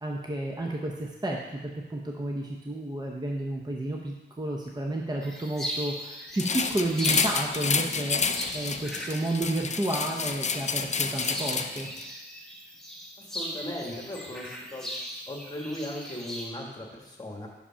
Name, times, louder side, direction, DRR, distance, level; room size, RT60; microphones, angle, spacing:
voice 1, 0.0-8.2 8.5-11.9, right 1 dB, 20° right, 0 dB, 0.6 m, -31 dB
sound 1, 5.2-16.5, equal, ahead, 1.2 m, -39 dB
sound 2, 6.4-12.0, left 5 dB, 40° left, 0.4 m, -29 dB
voice 2, 13.2-14.9 15.3-17.5, left 1 dB, 20° left, -1 dB, 1.4 m, -37 dB
5.5 x 5.0 x 5.6 m, 1.1 s
wide cardioid pair, 110°, 19 cm